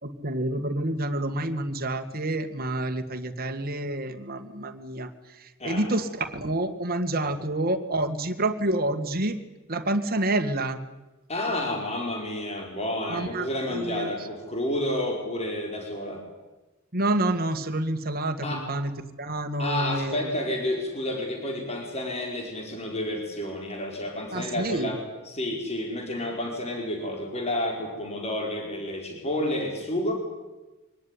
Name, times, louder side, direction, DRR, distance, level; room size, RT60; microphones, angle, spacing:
voice 1, 0.0-9.4 9.7-10.8 13.1-14.2 16.9-18.9 19.2-20.4 24.3-25.0, right 1 dB, 45° right, 6 dB, 2.1 m, -28 dB
voice 2, 5.6-5.9 7.2-7.3 11.3-16.2 18.4-18.6 19.6-25.0 25.3-30.1, left 1 dB, 30° left, 2 dB, 4.5 m, -30 dB
24.0 x 18.5 x 9.8 m, 1.1 s
head